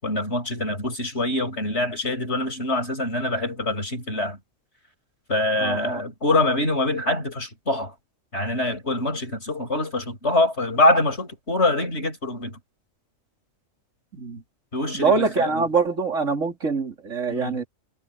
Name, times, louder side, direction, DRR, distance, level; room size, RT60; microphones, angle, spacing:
voice 1, 0.0-4.4 5.3-7.9 8.3-12.6 14.7-15.6 17.3-17.6, left 2 dB, 55° left, 7.8 m, -24 dB
voice 2, 5.6-6.0 14.1-14.4 14.9-17.6, right 4 dB, 70° right, 3.6 m, -24 dB
omnidirectional pair, 1.4 m